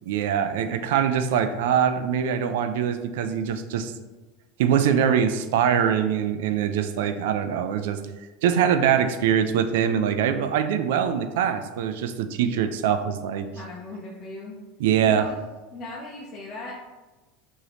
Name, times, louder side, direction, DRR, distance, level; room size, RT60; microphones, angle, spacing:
voice 1, 0.1-3.9 4.6-8.0 8.4-13.5 14.8-15.3, right 8 dB, 80° right, 9 dB, 0.3 m, -23 dB
voice 2, 13.5-14.6 15.0-15.4 15.7-16.7, left 2 dB, 30° left, -5 dB, 0.6 m, -38 dB
4.8 x 2.7 x 2.9 m, 1.2 s
supercardioid pair, 175°, 0 cm